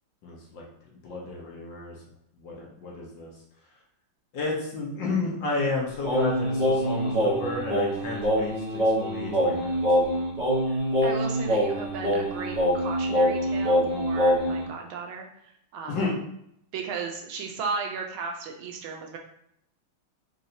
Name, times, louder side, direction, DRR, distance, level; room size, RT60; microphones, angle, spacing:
voice 1, 0.2-0.6 1.0-2.0 2.4-3.3 4.3-8.5 9.0-9.8 15.9-16.1, left 3 dB, 65° left, -3 dB, 1.4 m, -31 dB
Singing, 6.0-14.6, equal, 35° right, 0.6 m, -24 dB
voice 2, 10.7-16.0 16.7-19.2, right 5 dB, 75° right, 2 dB, 1.3 m, -35 dB
4.3 x 3.0 x 2.6 m, 0.74 s
omnidirectional pair, 2.4 m